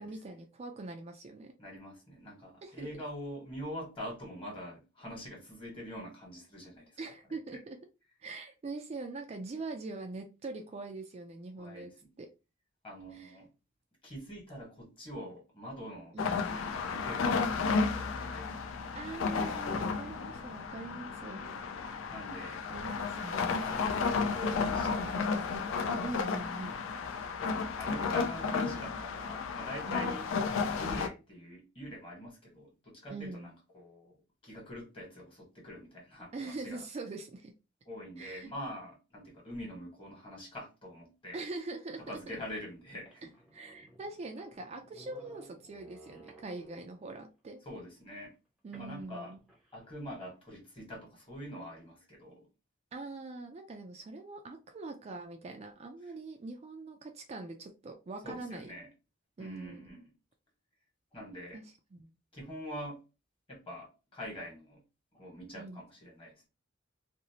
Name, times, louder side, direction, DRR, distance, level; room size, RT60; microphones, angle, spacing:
voice 1, 0.0-1.5 2.6-3.0 7.0-7.8 8.2-11.9 12.2-12.3 13.1-13.4 16.1-16.4 18.9-21.6 22.7-23.6 26.0-26.8 29.8-30.2 33.1-33.5 36.3-37.5 38.2-38.5 41.3-42.2 43.5-47.6 48.6-49.4 52.9-58.7 59.4-59.9 61.5-61.7 61.9-62.1 65.5-65.8, right 3 dB, 30° right, 0.3 m, -43 dB
voice 2, 1.6-7.0 11.6-12.1 12.8-13.5 14.0-16.2 16.5-18.5 22.1-22.6 23.4-26.0 27.4-30.3 30.8-34.2 34.4-36.8 37.9-41.4 42.1-43.3 47.6-48.3 48.7-49.3 49.7-52.5 56.0-56.1 58.2-58.9 59.4-60.1 61.1-61.6 62.3-63.0 63.5-64.8 65.1-66.5, equal, 25° left, 1.2 m, -45 dB
sound 1, 16.2-31.1, left 4 dB, 75° left, 0.4 m, -33 dB
sound 2, 43.0-47.0 48.7-49.8, right 2 dB, ahead, 0.7 m, -57 dB
2.6 x 2.0 x 2.7 m
head